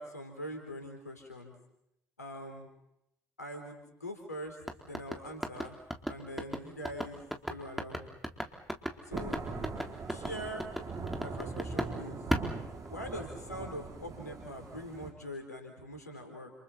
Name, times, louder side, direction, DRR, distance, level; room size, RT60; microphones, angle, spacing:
voice 1, 0.0-1.6 2.2-2.7 3.4-4.6 4.8-5.8 6.1-7.2 7.5-8.1 9.1-9.4 10.1-10.7 11.2-12.2 12.9-16.5, equal, 90° left, 4 dB, 3.9 m, -43 dB
sound 1, 4.6-12.0 12.3-13.4, equal, ahead, 3.9 m, -35 dB
Thunder / Rain, 9.1-15.1, right 3 dB, 40° right, 5.8 m, -41 dB
30.0 x 29.5 x 4.3 m, 0.80 s
figure-of-eight pair, 50°, 9 cm